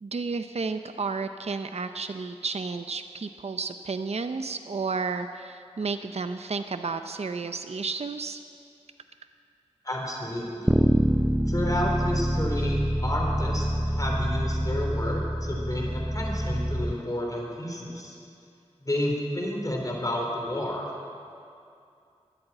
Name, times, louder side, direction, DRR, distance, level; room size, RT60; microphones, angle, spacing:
voice 1, 0.0-8.4, right 4 dB, 65° right, 8 dB, 0.6 m, -32 dB
voice 2, 9.8-10.7 11.5-18.2 18.8-20.9, left 1 dB, 30° left, -1 dB, 3.6 m, -30 dB
Bass guitar, 10.7-16.9, equal, 5° right, 0.5 m, -26 dB
13.0 x 10.5 x 8.8 m, 2.5 s
wide cardioid pair, 55°, 12 cm